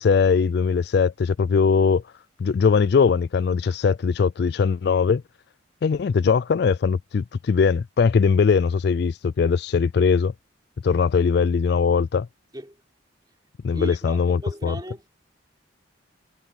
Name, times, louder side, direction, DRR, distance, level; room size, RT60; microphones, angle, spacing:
voice 1, 0.0-2.0 2.4-5.2 5.8-10.3 10.8-12.3 13.6-14.8, left 5 dB, 55° left, 0.3 m, -20 dB
voice 2, 13.7-15.0, right 1 dB, 20° right, 3.9 m, -36 dB
head